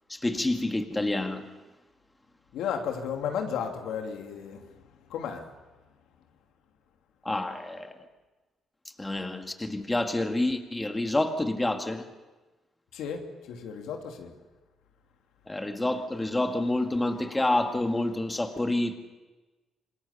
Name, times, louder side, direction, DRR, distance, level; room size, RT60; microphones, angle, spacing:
voice 1, 0.1-1.5 7.2-8.0 9.0-12.1 15.5-18.9, left 1 dB, 15° left, 5 dB, 2.0 m, -28 dB
voice 2, 2.5-4.6 5.1-5.4 12.9-14.3, left 7 dB, 85° left, 3 dB, 2.7 m, -33 dB
27.0 x 20.0 x 7.0 m, 1.2 s
cardioid pair, 90°, 0 cm